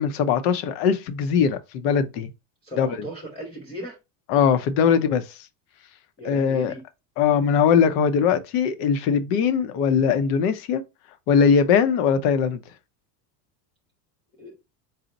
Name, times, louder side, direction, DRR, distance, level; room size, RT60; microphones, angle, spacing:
voice 1, 0.0-2.3 2.8-2.9 4.3-5.2 6.2-6.7 7.2-10.8 11.3-12.6, left 7 dB, 60° left, 0.7 m, -20 dB
voice 2, 2.6-4.0 6.2-6.8 14.4-14.6, equal, 15° left, 0.3 m, -37 dB
4.1 x 2.0 x 3.9 m
cardioid pair, 150°, 49 cm